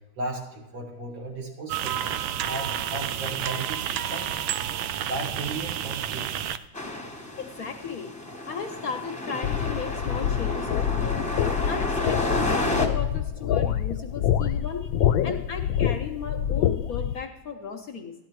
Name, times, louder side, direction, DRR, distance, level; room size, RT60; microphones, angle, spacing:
voice 1, 0.2-3.8 4.1-4.6 5.1-6.5, right 2 dB, 65° right, 0 dB, 2.9 m, -36 dB
sound 1, 1.7-6.6, right 10 dB, 90° right, 1.4 m, -30 dB
sound 2, 6.7-12.9, left 1 dB, 5° left, 0.9 m, -30 dB
voice 2, 7.4-8.1 8.5-18.1, left 6 dB, 60° left, 6 dB, 1.0 m, -36 dB
sound 3, 9.4-17.1, left 10 dB, 85° left, 1.4 m, -26 dB
13.5 x 10.5 x 4.6 m, 0.91 s
omnidirectional pair, 2.1 m